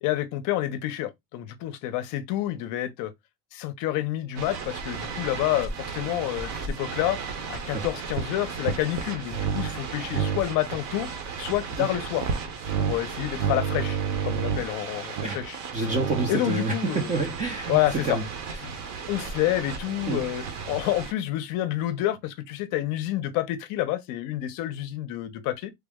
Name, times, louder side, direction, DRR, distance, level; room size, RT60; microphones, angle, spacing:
voice 1, 0.0-3.1 3.5-7.2 7.5-11.1 11.4-12.2 12.8-14.0 14.2-15.9 16.3-17.1 17.7-18.2 18.6-18.7 19.1-25.7, left 14 dB, 55° left, 0.6 m, -28 dB
sound 1, 4.4-21.1, right 6 dB, 45° right, 0.7 m, -32 dB
voice 2, 15.7-17.8 18.0-18.8 20.1-20.2, right 3 dB, 20° right, 0.3 m, -28 dB
3.4 x 2.0 x 3.4 m
cardioid pair, 175°, 37 cm